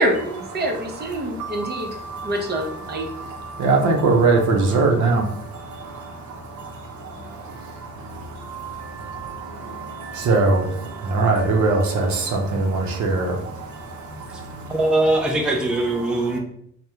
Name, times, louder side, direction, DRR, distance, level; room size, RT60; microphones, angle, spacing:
voice 1, 0.0-2.0 2.2-3.1, right 1 dB, 35° right, 2 dB, 0.7 m, -25 dB
voice 2, 1.1-14.7 16.3-16.4, right 3 dB, 70° right, 2 dB, 0.7 m, -24 dB
voice 3, 14.7-16.4, right 2 dB, 5° right, 0 dB, 0.4 m, -21 dB
3.4 x 2.1 x 2.8 m, 0.70 s
cardioid pair, 90°, 30 cm